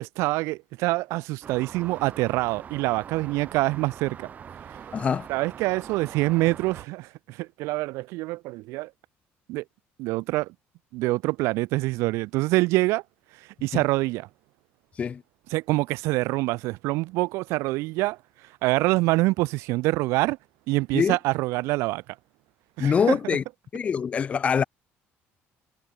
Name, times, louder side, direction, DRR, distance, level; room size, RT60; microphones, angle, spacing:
voice 1, 0.0-4.3 5.3-8.9 9.5-9.6 10.0-10.5 10.9-13.0 13.6-14.3 15.5-18.2 18.6-20.4 20.7-22.0 22.8-23.4, right 21 dB, 85° right, 0.7 m, -25 dB
sound 1, 1.4-6.9, right 8 dB, 35° right, 3.5 m, -43 dB
voice 2, 4.9-5.3 13.7-13.8 15.0-15.2 20.9-21.2 22.8-23.4 23.7-24.6, left 6 dB, 25° left, 0.4 m, -24 dB
cardioid pair, 150°, 5 cm